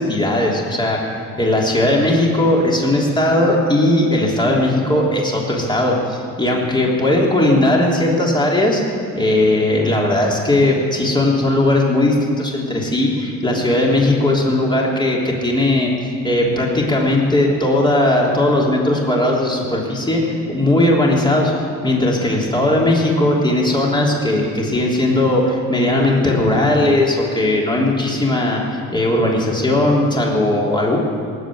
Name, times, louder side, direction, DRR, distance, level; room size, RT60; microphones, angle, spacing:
voice 1, 0.0-8.8 9.1-15.9 16.2-21.5 21.8-28.6 28.9-31.0, left 1 dB, 15° left, -3 dB, 3.3 m, -17 dB
18.5 x 8.1 x 9.5 m, 2.4 s
cardioid pair, 90°, 30 cm